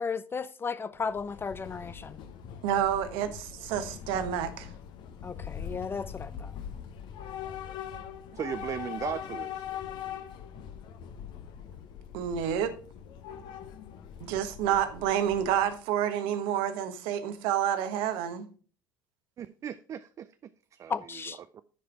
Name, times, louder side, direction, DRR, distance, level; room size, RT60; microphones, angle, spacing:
voice 1, 0.0-2.2 5.2-6.5 20.9-21.4, left 5 dB, 20° left, 0.5 m, -34 dB
Train / Subway metro underground, 1.0-15.8, left 9 dB, 50° left, 1.0 m, -42 dB
voice 2, 2.6-4.7 12.1-12.7 14.2-18.5, right 10 dB, 60° right, 1.2 m, -29 dB
voice 3, 8.3-9.6 19.4-20.3 20.7-20.9 21.5-21.6, right 9 dB, 30° right, 0.4 m, -36 dB
10.5 x 5.0 x 4.6 m
figure-of-eight pair, 70°, 10 cm